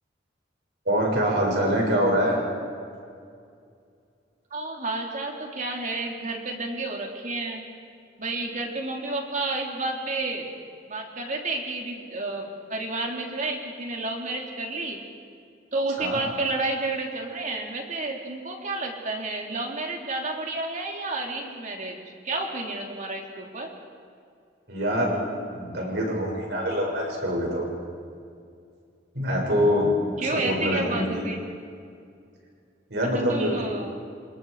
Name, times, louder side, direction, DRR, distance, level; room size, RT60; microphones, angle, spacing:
voice 1, 0.8-2.4 16.0-16.2 24.7-25.2 25.5-27.6 29.1-29.9 30.2-31.2 32.9-33.6, equal, 65° right, -1 dB, 6.7 m, -24 dB
voice 2, 4.5-7.6 8.2-10.5 10.9-15.0 15.7-22.0 22.2-23.7 30.2-31.4 33.1-34.0, right 2 dB, 45° right, 1 dB, 3.4 m, -30 dB
28.0 x 27.5 x 5.0 m, 2.3 s
head